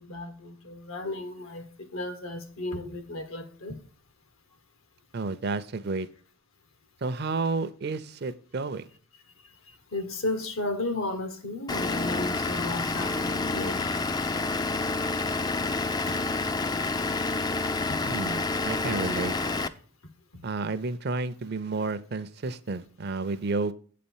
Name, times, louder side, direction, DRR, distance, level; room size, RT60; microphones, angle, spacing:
voice 1, 0.0-3.8 9.4-13.9 16.1-16.2 17.9-18.1 20.3-20.4, left 2 dB, 80° left, 1.4 m, -34 dB
voice 2, 5.1-6.1 7.0-8.9 18.1-19.3 20.4-23.7, right 3 dB, 50° right, 0.5 m, -31 dB
Vehicle / Engine, 11.7-19.7, left 3 dB, 20° left, 0.3 m, -28 dB
8.3 x 4.2 x 7.2 m
head